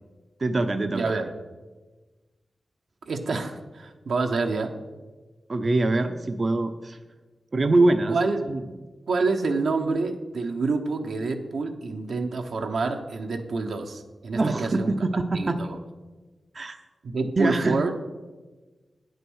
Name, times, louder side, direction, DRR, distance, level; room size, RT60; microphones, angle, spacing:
voice 1, 0.4-1.1 5.5-7.0 7.5-8.2 8.5-8.6 14.3-15.6 16.5-16.8 17.4-17.8, right 2 dB, 50° right, 7 dB, 0.6 m, -23 dB
voice 2, 0.9-1.3 3.1-4.8 8.1-8.5 9.1-14.9 15.3-15.8 17.0-17.9, right 3 dB, 85° right, 4 dB, 0.9 m, -27 dB
9.1 x 6.6 x 6.2 m, 1.3 s
cardioid pair, 55°, 0 cm